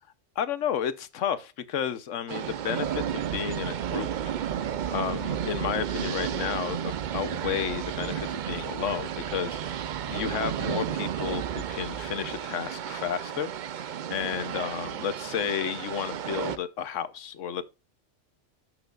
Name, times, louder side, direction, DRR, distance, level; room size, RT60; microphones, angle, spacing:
voice 1, 0.4-4.3 4.9-17.6, left 8 dB, 80° left, 1.1 m, -32 dB
sound 1, 2.3-16.6, right 9 dB, 60° right, 0.5 m, -32 dB
12.0 x 6.2 x 2.4 m
omnidirectional pair, 1.3 m